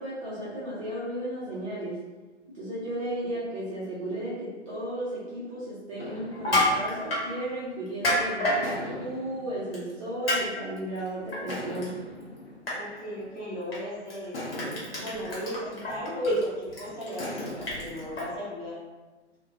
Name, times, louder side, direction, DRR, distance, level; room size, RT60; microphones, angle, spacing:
voice 1, 0.0-2.0 2.5-12.0, right 1 dB, 30° right, -9 dB, 0.7 m, -34 dB
sound 1, 6.0-8.0 8.6-10.9 11.5-13.7 14.3-16.5 17.2-18.1, left 1 dB, 70° left, 0.7 m, -41 dB
Crushing, 6.3-7.3 7.9-8.6 9.7-9.9 10.3-10.4 10.8-11.9 12.2-12.4 12.7-12.8 13.7-13.8 14.1-18.2, left 1 dB, 55° left, 1.1 m, -28 dB
voice 2, 12.7-18.7, equal, 20° left, -11 dB, 1.0 m, -34 dB
2.3 x 2.2 x 2.7 m, 1.2 s
figure-of-eight pair, 120°, 35 cm